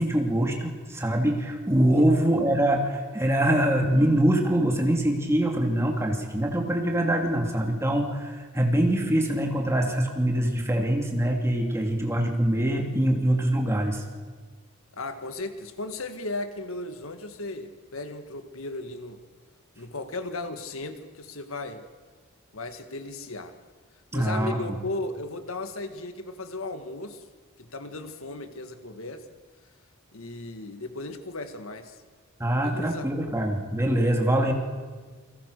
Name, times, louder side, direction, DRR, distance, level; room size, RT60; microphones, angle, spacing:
voice 1, 0.0-14.0 24.1-24.6 32.4-34.5, right 1 dB, 10° right, 1 dB, 2.8 m, -24 dB
voice 2, 14.9-19.2 19.8-21.9 22.5-23.5 24.1-27.2 27.6-29.3 30.1-32.0 32.6-33.1, left 2 dB, 70° left, 8 dB, 1.7 m, -36 dB
29.0 x 23.5 x 6.7 m, 1.5 s
head